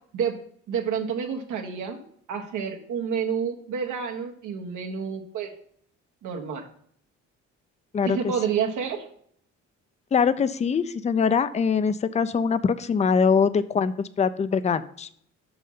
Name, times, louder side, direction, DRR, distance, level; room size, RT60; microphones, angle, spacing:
voice 1, 0.7-2.0 2.3-5.5 6.2-6.6 8.0-9.1, right 7 dB, 80° right, 2 dB, 1.4 m, -29 dB
voice 2, 7.9-8.3 10.1-15.1, left 6 dB, 25° left, 14 dB, 0.4 m, -23 dB
6.3 x 5.6 x 5.4 m, 0.63 s
cardioid pair, 90°, 30 cm